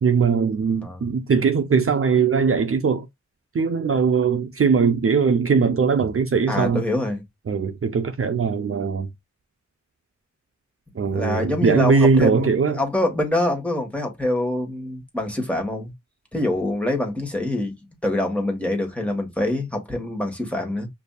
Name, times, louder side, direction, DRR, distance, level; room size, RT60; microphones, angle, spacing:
voice 1, 0.0-3.0 3.5-6.8 7.5-9.1 11.0-12.8, right 5 dB, 50° right, 0.5 m, -20 dB
voice 2, 6.5-7.2 11.1-15.9 16.3-17.7 18.0-20.9, left 1 dB, 5° left, 1.3 m, -25 dB
6.7 x 2.6 x 2.2 m
wide cardioid pair, 110°, 30 cm